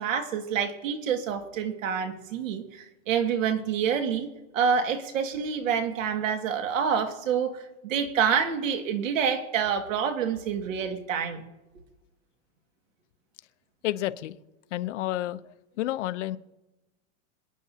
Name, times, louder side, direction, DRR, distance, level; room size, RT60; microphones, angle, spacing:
voice 1, 0.0-11.4, right 7 dB, 80° right, 6 dB, 2.1 m, -27 dB
voice 2, 13.8-14.4 14.7-16.4, left 14 dB, 65° left, 13 dB, 0.8 m, -30 dB
27.0 x 9.3 x 2.8 m, 1.0 s
supercardioid pair, 165°, 39 cm